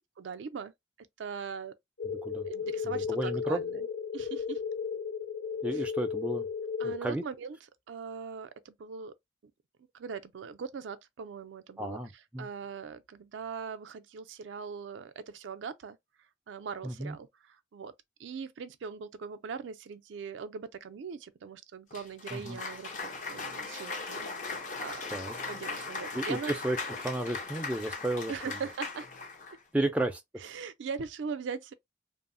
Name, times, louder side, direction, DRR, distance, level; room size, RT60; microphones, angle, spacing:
voice 1, 0.2-0.7 1.0-1.8 2.5-3.9 4.1-4.6 5.7-5.8 6.8-7.6 7.9-9.1 9.4-9.5 9.9-12.0 12.4-16.0 16.5-17.9 18.2-25.1 25.5-26.6 28.3-29.1 29.7-29.9 30.4-31.7, right 6 dB, 85° right, 0.4 m, -40 dB
sound 1, 2.0-7.0, left 6 dB, 75° left, 1.0 m, -34 dB
voice 2, 2.8-3.6 5.6-6.5 6.8-7.2 11.8-12.5 16.8-17.2 22.3-22.6 25.1-25.3 26.1-26.8 27.0-28.6 29.7-30.2, right 1 dB, 5° right, 0.3 m, -33 dB
Cheering / Applause, 21.9-29.6, left 4 dB, 40° left, 0.6 m, -39 dB
3.0 x 2.0 x 2.5 m
head